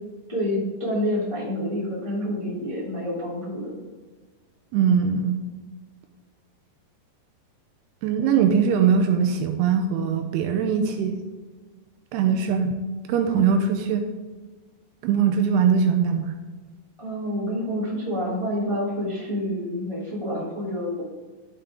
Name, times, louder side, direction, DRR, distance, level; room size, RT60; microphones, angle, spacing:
voice 1, 0.3-3.8 17.0-21.0, equal, 10° left, -7 dB, 1.7 m, -28 dB
voice 2, 4.7-5.4 8.0-11.2 12.1-12.7 13.1-14.1 15.0-16.4, right 6 dB, 80° right, 5 dB, 2.6 m, -21 dB
12.0 x 5.7 x 3.7 m, 1.4 s
omnidirectional pair, 4.9 m